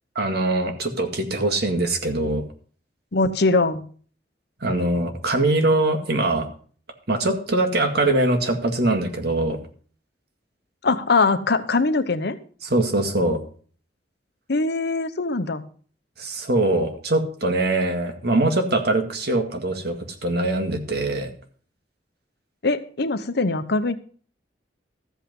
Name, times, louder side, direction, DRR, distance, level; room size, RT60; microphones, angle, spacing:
voice 1, 0.2-2.4 4.6-6.5 7.1-9.6 12.6-13.4 16.2-21.3, right 2 dB, 65° right, 6 dB, 2.0 m, -22 dB
voice 2, 3.1-3.8 10.8-12.4 14.5-15.6 22.6-23.9, left 3 dB, 65° left, 11 dB, 1.0 m, -22 dB
13.5 x 8.3 x 5.4 m, 0.43 s
head